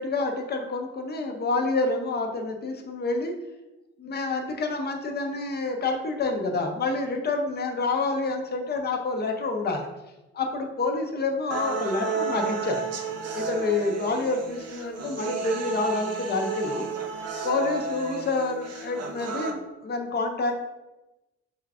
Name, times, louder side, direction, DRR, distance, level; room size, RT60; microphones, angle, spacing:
voice 1, 0.0-3.3 4.0-9.9 10.3-12.8 13.3-16.9 17.4-20.5, left 3 dB, 35° left, 3 dB, 0.7 m, -28 dB
sound 1, 11.5-19.5, right 4 dB, 55° right, 0.6 m, -32 dB
4.5 x 2.4 x 3.4 m, 1.0 s
cardioid pair, 90°, 30 cm